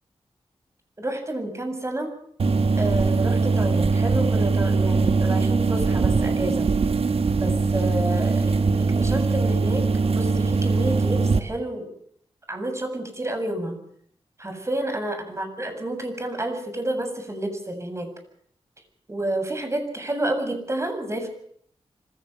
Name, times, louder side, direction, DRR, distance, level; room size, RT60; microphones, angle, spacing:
voice 1, 1.0-2.1 2.8-6.7 7.3-11.9 12.5-13.8 14.4-18.1 19.1-21.3, right 1 dB, 25° right, 7 dB, 7.5 m, -29 dB
sound 1, 2.4-11.4, right 4 dB, 65° right, 1.5 m, -21 dB
25.5 x 16.0 x 6.8 m, 0.63 s
cardioid pair, 65°, 11 cm